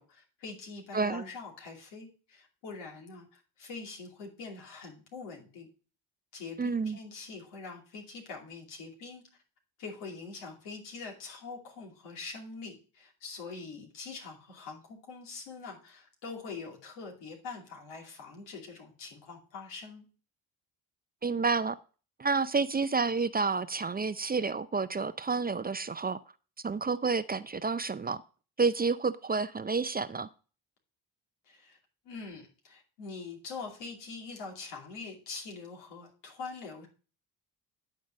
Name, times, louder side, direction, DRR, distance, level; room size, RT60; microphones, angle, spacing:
voice 1, 0.0-5.7 6.3-9.2 9.8-20.1 31.5-31.8 32.0-36.9, left 4 dB, 90° left, 2.6 m, -44 dB
voice 2, 6.6-7.0 21.2-21.8 22.2-26.2 26.6-28.2 28.6-30.3, right 4 dB, 25° right, 0.5 m, -29 dB
10.5 x 3.9 x 6.3 m
supercardioid pair, 60°, 41 cm